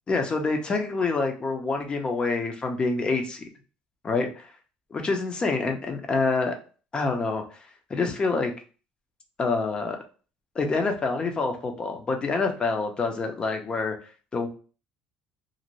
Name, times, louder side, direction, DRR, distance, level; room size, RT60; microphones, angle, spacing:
voice 1, 0.1-3.5 4.0-4.3 4.9-6.5 6.9-7.6 7.9-8.5 9.4-10.0 10.6-14.0 14.3-14.5, left 3 dB, 30° left, 4 dB, 0.6 m, -26 dB
2.6 x 2.1 x 3.0 m, 0.37 s
cardioid pair, 110°, 3 cm